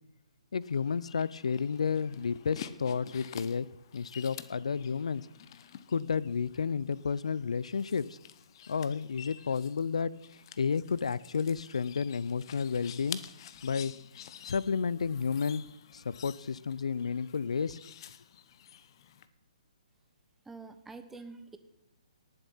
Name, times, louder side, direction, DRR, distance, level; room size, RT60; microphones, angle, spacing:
voice 1, 0.5-3.7 3.9-5.3 5.9-8.2 8.7-13.2 13.6-13.9 14.4-15.6 15.9-17.8, left 6 dB, 75° left, 21 dB, 0.5 m, -31 dB
sound 1, 0.6-19.3, left 10 dB, 45° left, 0.9 m, -49 dB
voice 2, 20.4-21.6, right 3 dB, 5° right, 8 dB, 1.0 m, -46 dB
18.5 x 7.3 x 5.6 m, 0.88 s
hypercardioid pair, 140°, 3 cm